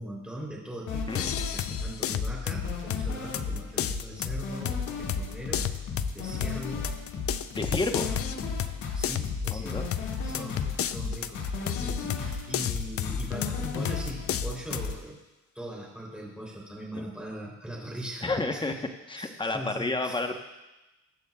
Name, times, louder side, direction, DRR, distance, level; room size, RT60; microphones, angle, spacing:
voice 1, 0.0-5.7 6.1-6.9 8.0-8.6 8.9-9.9 10.2-15.2 15.5-18.6 19.1-20.4, right 1 dB, 5° right, -3 dB, 3.3 m, -40 dB
sound 1, 0.9-15.0, left 4 dB, 75° left, 1.9 m, -34 dB
sound 2, 1.1-14.9, left 10 dB, 50° left, 0.5 m, -33 dB
voice 2, 7.5-8.1 9.5-9.8 12.1-12.2 17.0-17.1 18.2-18.7 19.1-20.4, left 2 dB, 15° left, 5 dB, 1.0 m, -30 dB
20.5 x 8.1 x 2.3 m, 1.0 s
cardioid pair, 90°, 30 cm